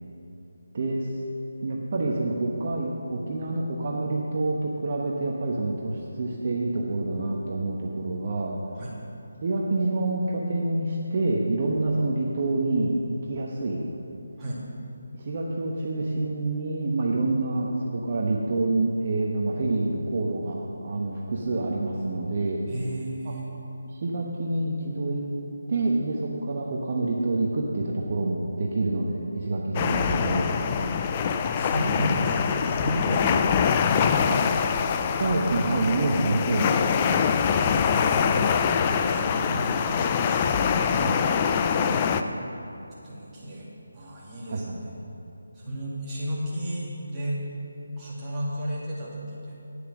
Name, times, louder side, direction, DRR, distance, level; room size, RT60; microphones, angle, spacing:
voice 1, 0.7-1.1 1.6-8.6 9.4-13.8 15.2-22.6 23.2-23.3 23.9-25.2 25.7-30.6 34.3-34.4 35.0-37.0 40.9-41.1 44.5-44.8, right 2 dB, 45° right, -2 dB, 1.1 m, -27 dB
voice 2, 22.7-23.5 31.0-34.8 37.3-38.3 38.7-41.2 41.7-42.3 43.0-45.0 45.5-47.4 48.0-49.6, equal, 15° right, -9 dB, 2.5 m, -34 dB
sound 1, 29.7-42.2, left 6 dB, 25° left, 0.4 m, -24 dB
9.8 x 8.5 x 6.2 m, 3.0 s
figure-of-eight pair, 160°, 0 cm